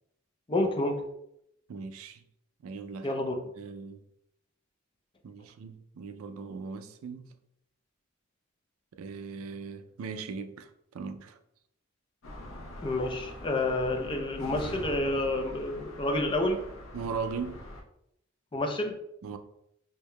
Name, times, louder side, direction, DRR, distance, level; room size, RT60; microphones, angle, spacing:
voice 1, 0.5-1.0 3.0-3.4 12.8-16.6 18.5-19.0, left 2 dB, 25° left, 0.5 m, -29 dB
voice 2, 1.7-2.2 2.6-3.1 3.6-4.0 5.2-7.3 9.0-11.4 16.9-17.7 19.2-19.4, right 5 dB, 80° right, 0.4 m, -39 dB
sound 1, 12.2-17.8, left 1 dB, 70° left, 0.7 m, -43 dB
4.6 x 2.7 x 2.2 m
head